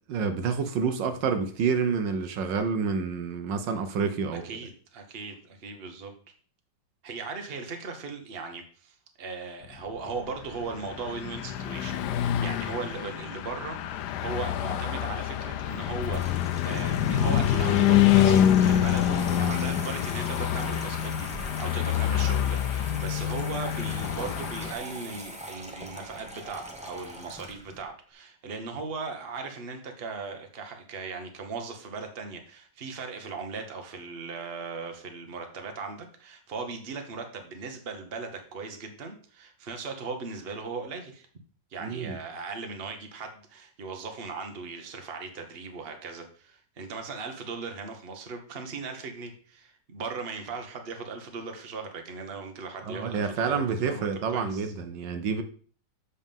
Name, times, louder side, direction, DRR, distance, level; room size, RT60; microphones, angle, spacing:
voice 1, 0.1-4.4 41.8-42.2 52.9-55.4, right 5 dB, 80° right, 1.4 m, -28 dB
voice 2, 4.4-6.1 7.0-41.3 41.7-54.7, right 4 dB, 40° right, 1.1 m, -38 dB
Car passing by / Truck, 10.3-24.7, left 10 dB, 75° left, 1.1 m, -26 dB
Water tap faucet / Sink (filling or washing), 15.6-27.8, right 1 dB, 5° right, 0.5 m, -43 dB
7.3 x 4.2 x 5.3 m
omnidirectional pair, 2.0 m